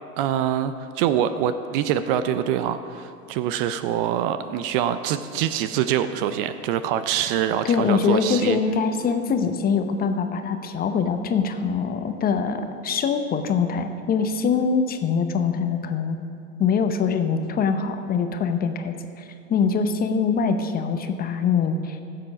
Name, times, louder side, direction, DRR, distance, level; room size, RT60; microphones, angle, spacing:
voice 1, 0.2-8.6, right 10 dB, 40° right, 11 dB, 0.5 m, -24 dB
voice 2, 7.6-16.2 16.6-22.0, left 6 dB, 20° left, 8 dB, 0.8 m, -23 dB
15.0 x 7.7 x 5.3 m, 2.5 s
hypercardioid pair, 100°, 44 cm